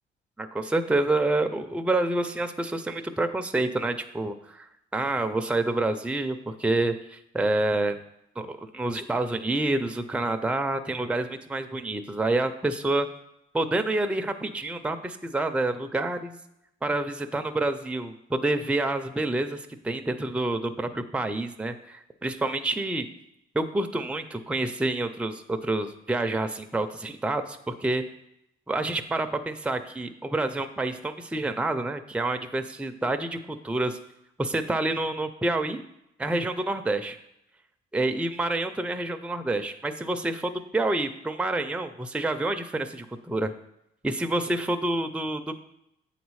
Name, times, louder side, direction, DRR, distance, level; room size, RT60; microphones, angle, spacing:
voice 1, 0.4-4.7 4.9-8.0 8.4-13.1 13.5-16.3 16.8-23.1 23.5-28.0 28.7-34.0 34.4-35.8 36.2-37.2 37.9-43.5 44.0-45.6, right 2 dB, 5° right, 7 dB, 0.5 m, -28 dB
7.8 x 4.1 x 4.7 m, 0.81 s
cardioid pair, 90°, 20 cm